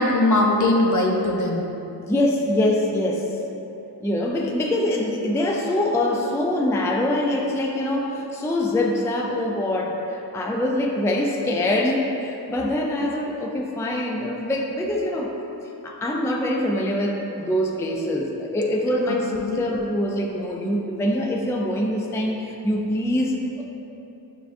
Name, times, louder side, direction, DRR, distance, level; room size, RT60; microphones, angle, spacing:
voice 1, 0.0-1.6 19.1-19.6, left 2 dB, 45° left, 0 dB, 0.6 m, -21 dB
voice 2, 2.1-3.3 4.0-15.3 15.8-23.6, left 1 dB, 5° left, 0 dB, 0.4 m, -24 dB
6.8 x 2.4 x 2.6 m, 3.0 s
cardioid pair, 45°, 42 cm